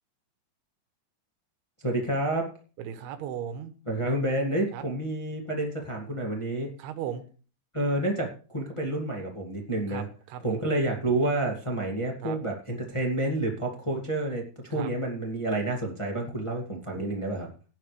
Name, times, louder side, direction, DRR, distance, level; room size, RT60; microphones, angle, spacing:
voice 1, 1.8-2.5 3.9-6.7 7.7-10.0 10.4-17.5, right 1 dB, 20° left, -1 dB, 0.8 m, -29 dB
voice 2, 2.8-3.7 4.7-4.8 6.8-7.2 9.9-10.6 12.2-12.4 14.7-14.9 16.9-17.2, right 9 dB, 85° right, 8 dB, 3.2 m, -36 dB
17.0 x 11.0 x 3.4 m, 0.38 s
omnidirectional pair, 4.5 m